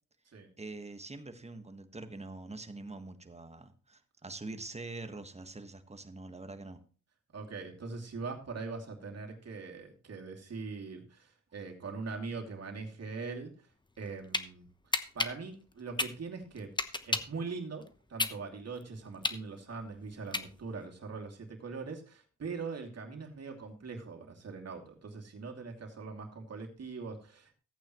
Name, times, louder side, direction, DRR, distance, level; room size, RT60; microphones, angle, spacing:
voice 1, 0.6-6.8, right 2 dB, 20° right, 8 dB, 1.4 m, -44 dB
voice 2, 7.3-13.5 14.0-16.7 17.1-27.6, right 4 dB, 50° right, 1 dB, 2.7 m, -42 dB
sound 1, 13.9-14.5 14.9-17.4 17.8-20.9, left 2 dB, 15° left, 1.0 m, -33 dB
14.5 x 8.7 x 3.1 m, 0.39 s
cardioid pair, 85°, 32 cm